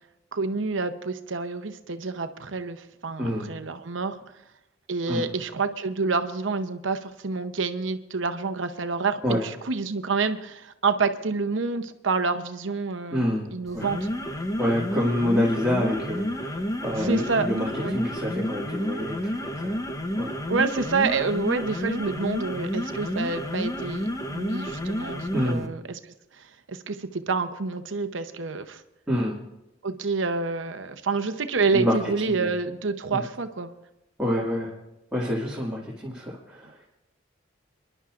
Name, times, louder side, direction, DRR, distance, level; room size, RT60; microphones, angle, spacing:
voice 1, 0.3-4.2 4.9-14.1 17.0-17.5 17.8-18.0 20.5-28.8 29.8-33.7, right 4 dB, 80° right, 9 dB, 0.8 m, -28 dB
voice 2, 3.2-3.5 5.1-5.2 9.2-9.4 13.1-13.4 13.7-13.9 14.6-19.8 20.2-20.3 25.3-25.7 29.1-29.4 31.7-32.0 32.3-32.5 33.1-33.2 34.2-34.7 35.1-36.8, left 1 dB, 5° right, -6 dB, 2.1 m, -27 dB
sound 1, 13.7-25.7, equal, 20° left, 0.8 m, -30 dB
28.0 x 11.0 x 2.5 m, 0.91 s
head